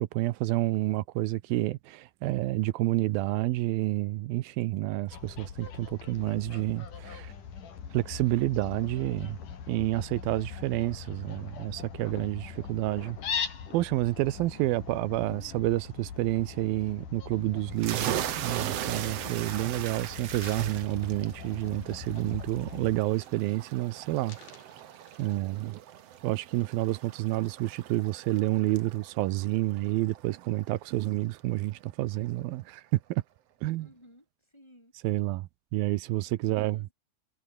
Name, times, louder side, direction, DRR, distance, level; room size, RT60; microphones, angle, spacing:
voice 1, 0.0-7.3 7.9-9.4 9.7-13.2 13.7-24.4 25.2-25.8 26.2-32.8 33.1-33.2 33.6-33.9 35.0-36.8, right 18 dB, 85° right, 2.6 m, -29 dB
Fowl, 5.1-23.0, left 7 dB, 60° left, 4.8 m, -41 dB
sound 1, 17.8-31.1, right 11 dB, 60° right, 1.8 m, -39 dB
sound 2, 20.4-22.3 22.6-22.9 23.2-23.7 24.0-25.7 26.3-26.4, left 6 dB, 80° left, 5.9 m, -55 dB
voice 2, 33.8-35.0 36.4-36.9, equal, 5° left, 7.3 m, -56 dB
omnidirectional pair, 4.2 m